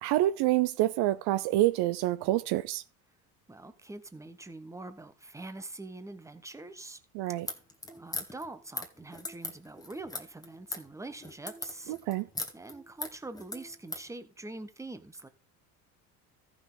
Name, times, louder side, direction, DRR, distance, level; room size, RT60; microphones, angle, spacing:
voice 1, 0.0-2.8 7.1-7.5 11.9-12.3, right 15 dB, 65° right, 0.6 m, -27 dB
voice 2, 3.5-7.0 7.9-12.1 12.5-15.3, right 2 dB, 5° right, 1.1 m, -44 dB
sound 1, 7.4-14.1, left 2 dB, 10° left, 1.6 m, -40 dB
14.0 x 6.1 x 3.9 m
supercardioid pair, 90°, 44 cm